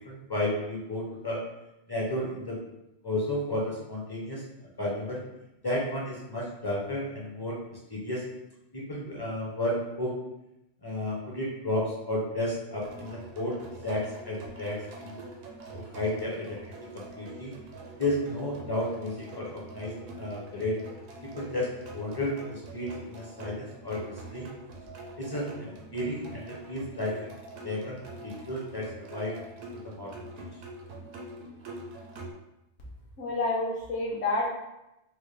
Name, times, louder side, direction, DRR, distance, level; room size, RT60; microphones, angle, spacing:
voice 1, 0.0-1.4 1.9-2.6 3.0-4.4 4.8-5.2 5.6-7.6 7.9-8.2 8.7-10.1 10.8-13.6 13.8-15.2 15.7-16.6 16.9-17.5 18.0-20.7 21.4-24.5 25.2-27.1 27.6-29.3 29.8-30.4, left 1 dB, 25° left, -5 dB, 0.5 m, -32 dB
sound 1, 12.8-32.3, right 2 dB, 80° right, 1.0 m, -45 dB
voice 2, 33.2-34.5, left 2 dB, 65° left, -4 dB, 1.2 m, -28 dB
4.3 x 2.2 x 3.2 m, 0.91 s
omnidirectional pair, 1.3 m